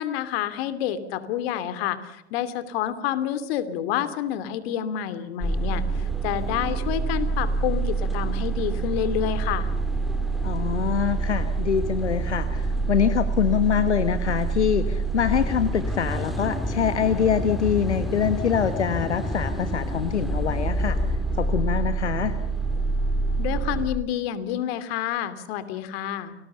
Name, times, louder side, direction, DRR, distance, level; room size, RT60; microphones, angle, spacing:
voice 1, 0.0-9.7 23.4-26.3, left 11 dB, 60° left, 12 dB, 2.9 m, -28 dB
sound 1, 5.4-23.9, right 3 dB, ahead, 4.4 m, -27 dB
voice 2, 10.4-21.0 21.3-22.3, left 8 dB, 85° left, 11 dB, 1.5 m, -24 dB
30.0 x 20.5 x 6.9 m, 0.84 s
hypercardioid pair, 90°, 33 cm